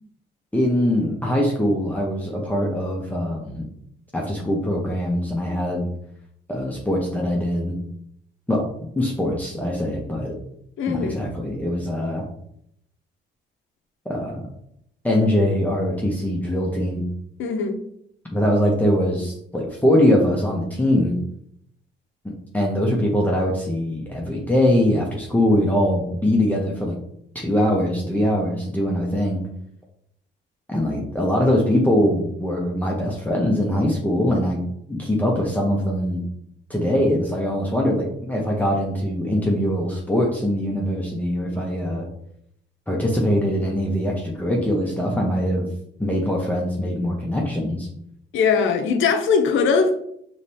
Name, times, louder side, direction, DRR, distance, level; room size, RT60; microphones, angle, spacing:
voice 1, 0.5-3.6 4.1-5.9 6.5-7.8 8.5-8.7 9.0-10.3 10.9-12.2 14.1-14.4 15.0-17.0 18.3-21.2 22.2-27.0 27.3-29.4 30.7-34.6 34.9-36.2 36.7-42.1 42.9-45.7 46.0-47.9, left 1 dB, 10° left, -2 dB, 0.9 m, -22 dB
voice 2, 10.8-11.2 17.4-17.8 48.3-50.0, left 5 dB, 75° left, 6 dB, 0.7 m, -20 dB
5.0 x 3.2 x 2.8 m, 0.72 s
cardioid pair, 90°, 20 cm